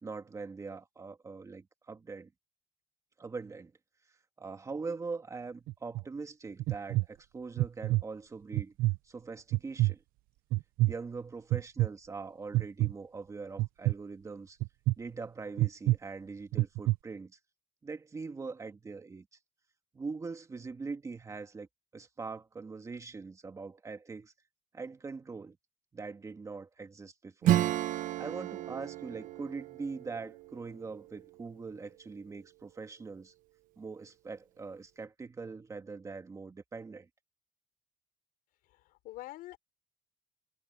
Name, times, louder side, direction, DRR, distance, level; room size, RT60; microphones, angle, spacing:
voice 1, 0.0-2.3 3.2-3.7 4.4-8.7 9.0-10.0 10.9-14.6 15.0-17.4 17.8-19.3 19.9-21.7 21.9-24.3 24.7-25.6 25.9-27.6 28.2-33.3 33.8-37.1, right 4 dB, 20° right, 2.1 m, -42 dB
sound 1, 5.7-6.0 6.6-7.1 7.6-8.0 8.5-9.0 9.5-9.9 10.5-10.9 11.5-11.9 12.5-12.9 13.6-13.9 14.6-14.9 15.6-16.0 16.5-17.0, right 18 dB, 90° right, 0.7 m, -27 dB
Acoustic guitar / Strum, 27.4-31.7, right 13 dB, 70° right, 1.2 m, -33 dB
voice 2, 38.6-39.6, left 16 dB, 90° left, 5.2 m, -46 dB
cardioid pair, 150°, 15 cm